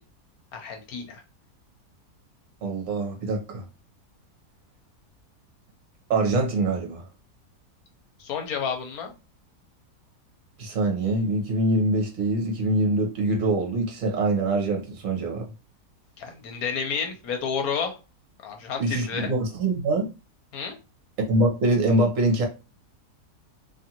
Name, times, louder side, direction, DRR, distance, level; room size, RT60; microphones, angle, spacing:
voice 1, 0.5-1.2 8.2-9.1 16.2-18.0 18.4-19.3 20.5-20.7, left 6 dB, 70° left, 1.1 m, -30 dB
voice 2, 2.6-3.6 6.1-7.1 10.6-15.5 18.8-20.1 21.3-22.4, right 2 dB, 60° right, 1.2 m, -24 dB
2.8 x 2.5 x 2.8 m
omnidirectional pair, 1.7 m